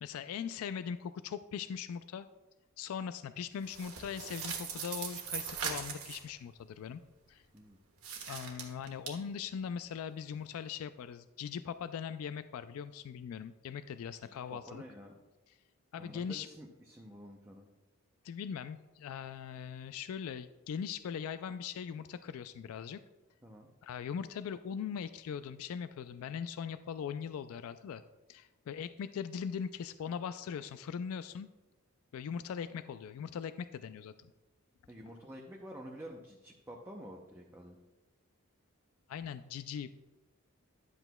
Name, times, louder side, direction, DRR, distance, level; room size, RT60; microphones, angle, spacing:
voice 1, 0.0-2.3 2.8-7.0 7.3-7.4 8.3-14.8 15.9-16.5 18.2-23.0 23.8-28.0 28.3-31.5 32.1-34.3 39.1-40.0, left 7 dB, 75° left, 12 dB, 0.3 m, -40 dB
sound 1, 3.6-6.3 8.0-9.1, right 7 dB, 75° right, 1.3 m, -40 dB
voice 2, 14.2-15.1 15.9-17.7 23.4-23.7 34.9-37.8, equal, 10° right, -1 dB, 0.6 m, -49 dB
11.0 x 8.0 x 2.2 m, 1.1 s
head